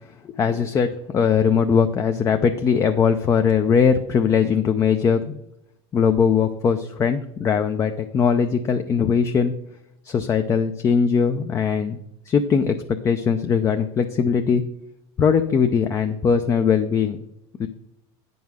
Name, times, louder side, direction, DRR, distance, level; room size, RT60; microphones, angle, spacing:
voice 1, 0.2-5.4 5.9-9.5 10.0-12.0 12.3-14.7 15.2-17.2 17.6-17.7, left 6 dB, 20° left, 6 dB, 0.5 m, -20 dB
9.2 x 5.4 x 6.2 m, 0.85 s
supercardioid pair, 150°, 13 cm